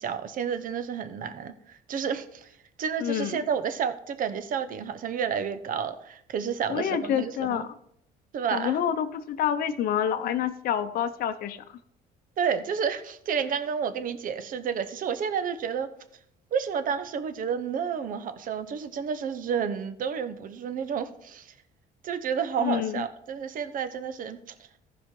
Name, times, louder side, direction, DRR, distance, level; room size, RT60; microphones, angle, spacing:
voice 1, 0.0-2.5 2.8-7.7 8.3-8.8 12.4-15.9 16.5-21.5 22.0-24.5, right 7 dB, 55° right, 11 dB, 0.9 m, -30 dB
voice 2, 3.0-3.4 6.7-7.7 8.5-11.8 22.6-23.0, left 9 dB, 60° left, 8 dB, 0.7 m, -28 dB
14.5 x 5.0 x 3.8 m, 0.71 s
cardioid pair, 110°, 17 cm